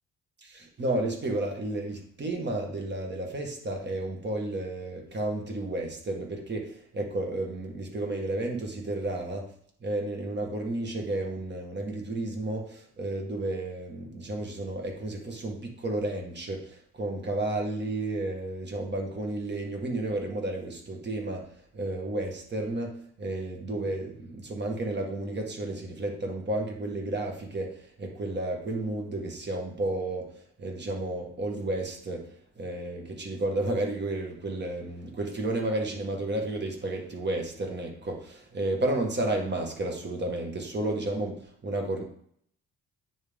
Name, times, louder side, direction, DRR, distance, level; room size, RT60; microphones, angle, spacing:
voice 1, 0.4-9.5 9.8-32.3 32.6-42.0, right 2 dB, 35° right, 1 dB, 1.7 m, -32 dB
9.2 x 3.7 x 3.7 m, 0.64 s
cardioid pair, 90°, 30 cm